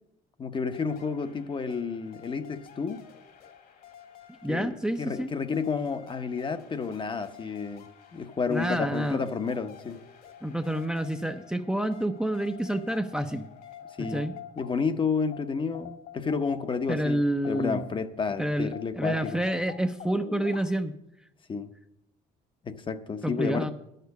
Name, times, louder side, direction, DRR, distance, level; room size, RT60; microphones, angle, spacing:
voice 1, 0.4-3.0 4.5-10.0 14.0-14.3 14.6-19.4 21.5-21.7 22.6-23.7, left 5 dB, 30° left, 10 dB, 0.7 m, -31 dB
sound 1, 0.6-18.3 18.7-20.6, left 9 dB, 60° left, 1.7 m, -48 dB
voice 2, 4.4-5.3 8.5-9.2 10.4-13.5 14.0-14.3 16.9-17.9 18.4-20.9 23.2-23.7, right 1 dB, 5° right, 7 dB, 0.5 m, -28 dB
10.5 x 6.7 x 8.1 m, 0.83 s
cardioid pair, 110°, 17 cm